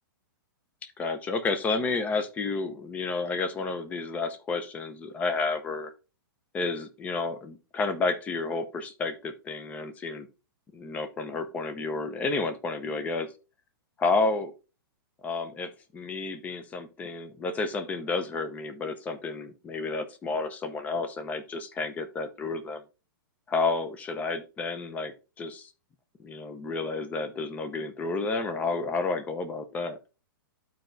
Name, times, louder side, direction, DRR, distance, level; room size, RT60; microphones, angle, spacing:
voice 1, 1.0-5.9 6.5-10.3 10.7-13.3 14.0-14.5 15.2-22.8 23.5-25.7 26.2-30.0, left 3 dB, 10° left, 10 dB, 0.7 m, -31 dB
12.5 x 4.5 x 2.6 m, 0.32 s
hypercardioid pair, 160°, 12 cm